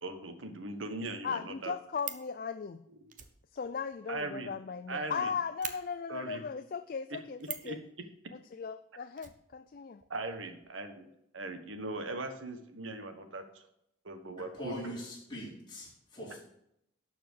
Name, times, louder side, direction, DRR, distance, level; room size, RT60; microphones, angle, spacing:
voice 1, 0.0-1.7 3.0-3.1 4.1-4.5 4.9-5.3 6.1-6.4 7.1-7.2 7.6-8.1 10.1-13.6 14.0-15.0 16.3-16.4, right 2 dB, 80° right, 1.4 m, -40 dB
voice 2, 1.2-2.8 3.5-7.8 8.3-10.0, left 6 dB, 45° left, 0.3 m, -37 dB
Fire, 1.6-2.3 3.1-4.9 5.1-5.2 5.6-5.8 7.4-7.8 9.2-10.1 10.3-10.4 10.6-10.7, right 10 dB, 40° right, 0.8 m, -43 dB
voice 3, 14.4-16.4, equal, 20° left, 4.6 m, -42 dB
12.5 x 4.7 x 7.1 m
head